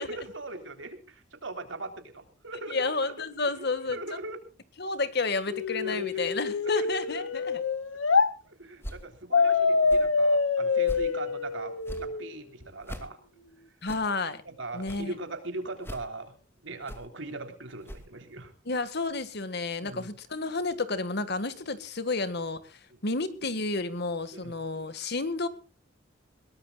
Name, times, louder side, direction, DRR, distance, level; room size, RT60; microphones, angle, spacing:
voice 1, 0.0-2.9 3.6-4.4 5.8-6.2 6.7-7.2 8.4-13.2 14.5-16.3 16.6-18.5 19.8-20.2 22.9-23.0 24.3-24.6, right 2 dB, 70° right, 5 dB, 3.6 m, -40 dB
voice 2, 2.7-4.0 4.8-7.6 13.8-14.4 14.7-15.1 18.7-25.5, left 3 dB, 55° left, 12 dB, 1.8 m, -31 dB
sound 1, 5.5-8.3 9.3-12.3, left 4 dB, 90° left, 1.5 m, -26 dB
sound 2, 8.8-9.1 9.8-10.1 10.8-11.1 11.8-12.1 12.8-13.1 13.8-14.1 14.8-15.1 15.8-16.1 16.8-17.1 17.8-18.1, equal, 10° left, 2.3 m, -41 dB
21.5 x 18.5 x 2.4 m, 0.35 s
head